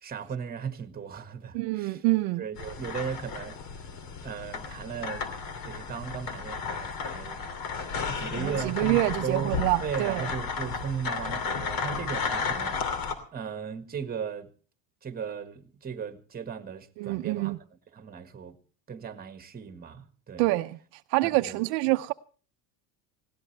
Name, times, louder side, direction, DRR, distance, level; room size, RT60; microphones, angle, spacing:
voice 1, 0.0-2.0 2.4-3.6 4.2-5.4 5.6-7.5 8.2-9.5 9.8-13.0 13.3-14.5 15.0-17.5 17.9-18.6 18.9-20.5 21.2-21.6, right 7 dB, 20° right, 1.7 m, -37 dB
voice 2, 1.5-2.4 8.4-10.2 17.0-17.6 20.4-20.8 21.1-22.1, right 20 dB, 70° right, 0.8 m, -26 dB
sound 1, 2.6-13.1, left 5 dB, 50° left, 2.8 m, -33 dB
20.5 x 17.5 x 3.3 m
supercardioid pair, 125°, 46 cm